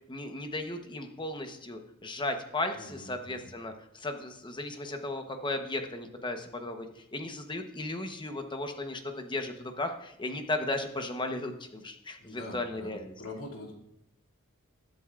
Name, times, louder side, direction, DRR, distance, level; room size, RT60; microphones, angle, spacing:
voice 1, 0.1-13.1, left 2 dB, 20° left, 5 dB, 1.0 m, -35 dB
voice 2, 2.7-3.5 12.2-12.9 13.2-13.7, left 2 dB, 70° left, -2 dB, 2.6 m, -43 dB
20.5 x 7.9 x 2.5 m, 0.79 s
head